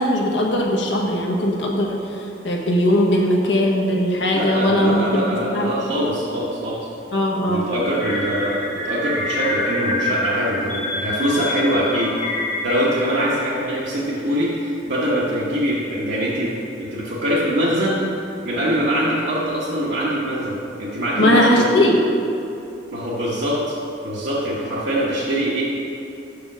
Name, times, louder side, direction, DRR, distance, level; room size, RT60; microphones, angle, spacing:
voice 1, 0.0-2.0 2.4-5.7 7.1-7.7 21.2-22.0, equal, 80° left, 0 dB, 1.0 m, -19 dB
voice 2, 4.3-6.8 7.5-12.1 12.6-16.5 16.8-18.0 18.4-21.7 22.9-23.7 24.0-25.6, equal, 80° right, -8 dB, 1.1 m, -23 dB
sound 1, 8.0-13.1, left 2 dB, 45° left, 1.4 m, -27 dB
5.7 x 5.1 x 6.0 m, 2.7 s
head